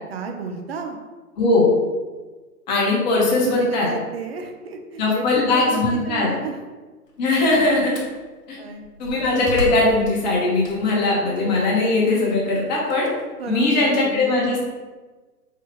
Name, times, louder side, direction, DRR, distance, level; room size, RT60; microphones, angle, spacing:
voice 1, 0.1-1.0 3.4-6.6 8.5-8.8 9.1-9.3 13.4-14.5, right 5 dB, 40° right, 4 dB, 0.4 m, -32 dB
voice 2, 1.4-1.7 2.7-3.9 5.0-6.3 7.2-7.9 8.5-8.6 9.0-13.1 13.5-14.6, left 2 dB, 30° left, -3 dB, 0.9 m, -20 dB
Slam, 7.1-8.2 8.8-11.1 11.5-13.9, left 3 dB, 90° left, 0.9 m, -34 dB
4.6 x 2.3 x 3.1 m, 1.3 s
hypercardioid pair, 135°, 47 cm